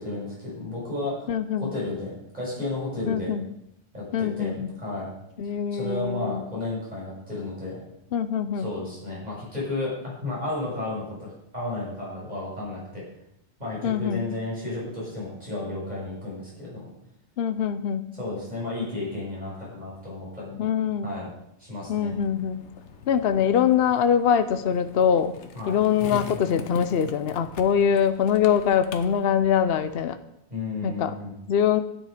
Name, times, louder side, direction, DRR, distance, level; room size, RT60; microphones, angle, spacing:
voice 1, 0.0-1.3 1.6-3.4 3.9-4.5 4.8-5.1 5.4-7.8 8.5-13.0 13.6-16.8 18.2-20.6 21.0-21.3 21.6-22.1 25.5-25.8 30.5-31.3, left 2 dB, 40° right, -6 dB, 6.7 m, -33 dB
voice 2, 1.3-1.7 3.1-3.5 4.1-4.7 5.4-6.4 8.1-8.7 13.8-14.2 17.4-18.1 20.6-21.1 21.9-22.6 23.1-25.3 25.7-30.2 30.8-31.1 31.5-31.8, left 8 dB, 65° left, 10 dB, 0.9 m, -23 dB
Skateboard, 22.1-30.1, left 6 dB, 85° left, 1.3 m, -42 dB
12.5 x 9.8 x 5.0 m, 0.79 s
omnidirectional pair, 1.2 m